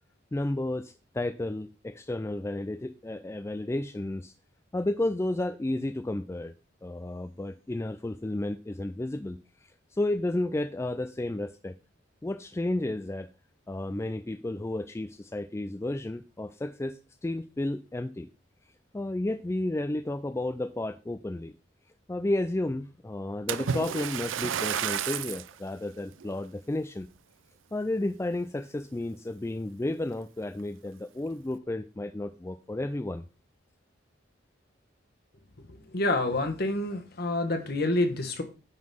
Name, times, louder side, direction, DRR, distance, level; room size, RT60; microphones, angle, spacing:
voice 1, 0.3-4.3 4.7-6.5 6.8-9.4 9.9-11.7 12.2-13.3 13.7-18.3 18.9-21.5 22.1-27.1 27.7-33.2, left 1 dB, 15° left, 10 dB, 0.3 m, -32 dB
Splash splatter, 23.5-25.5 26.2-26.4 27.0-27.1, right 8 dB, 85° right, 0.5 m, -31 dB
voice 2, 35.9-38.4, left 2 dB, 55° left, 5 dB, 1.4 m, -27 dB
9.8 x 4.0 x 5.4 m, 0.32 s
head